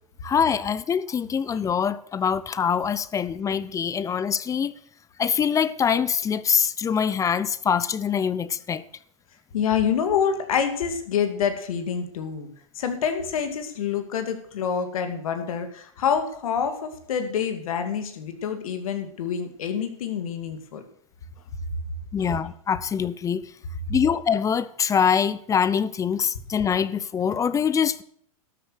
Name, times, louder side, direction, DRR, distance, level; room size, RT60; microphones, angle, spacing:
voice 1, 0.2-4.7 5.2-8.8 22.1-23.4 23.9-28.0, left 7 dB, 20° left, 0.6 m, -24 dB
voice 2, 9.5-12.5 12.7-20.8 22.2-22.3, left 7 dB, 75° left, 2.3 m, -27 dB
12.5 x 8.6 x 6.4 m
hypercardioid pair, 120°, 18 cm